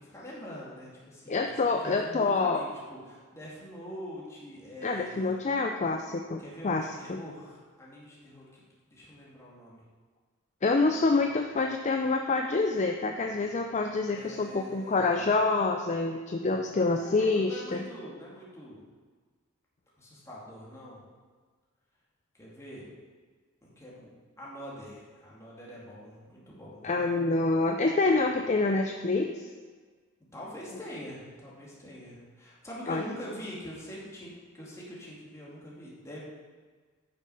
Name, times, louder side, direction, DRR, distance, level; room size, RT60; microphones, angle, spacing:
voice 1, 0.0-5.4 6.4-8.5 8.9-9.8 14.1-15.3 16.8-18.8 20.0-21.0 22.3-22.9 23.6-24.1 24.4-27.1 30.3-36.2, equal, 15° left, -6 dB, 2.4 m, -44 dB
voice 2, 1.3-2.6 4.8-7.2 10.6-17.8 26.8-29.5 32.9-33.0, left 3 dB, 35° left, 4 dB, 0.5 m, -27 dB
8.9 x 6.4 x 5.6 m, 1.5 s
head